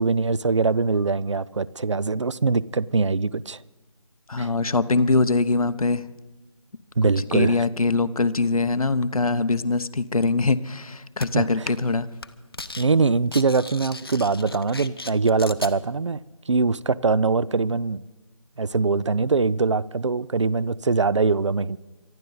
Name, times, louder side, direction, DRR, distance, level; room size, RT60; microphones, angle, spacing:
voice 1, 0.0-3.6 4.4-4.5 7.0-7.6 11.3-11.5 12.8-16.2 16.5-18.0 18.6-21.8, right 4 dB, 55° right, 0.5 m, -22 dB
voice 2, 4.3-6.0 7.0-12.1, left 3 dB, 90° left, 0.9 m, -23 dB
sound 1, 11.2-11.3 11.7-11.9 12.2-12.9 13.1-15.7, left 3 dB, 45° left, 0.8 m, -37 dB
24.5 x 12.0 x 4.0 m
figure-of-eight pair, 180°, 18 cm